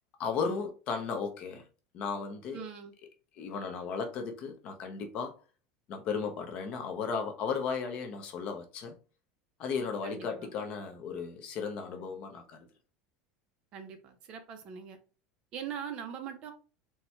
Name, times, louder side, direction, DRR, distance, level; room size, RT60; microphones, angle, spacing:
voice 1, 0.2-1.6 1.9-2.7 3.4-5.3 5.9-8.9 9.6-12.7, left 5 dB, 35° left, 0.7 m, -35 dB
voice 2, 2.5-2.9 10.0-10.5 13.7-15.0 15.5-16.5, right 8 dB, 35° right, 0.7 m, -41 dB
4.2 x 2.3 x 4.4 m
supercardioid pair, 175°, 3 cm